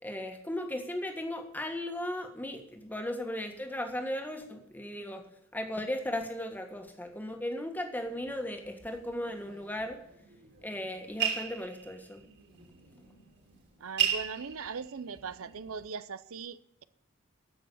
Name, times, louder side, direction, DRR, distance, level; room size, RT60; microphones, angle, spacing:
voice 1, 0.0-5.2 5.5-10.0 10.6-12.2, left 1 dB, 10° left, 1.6 m, -36 dB
sound 1, 8.0-15.9, right 9 dB, 55° right, 3.1 m, -38 dB
voice 2, 13.8-16.8, right 5 dB, 85° right, 0.6 m, -40 dB
14.5 x 6.3 x 8.4 m
head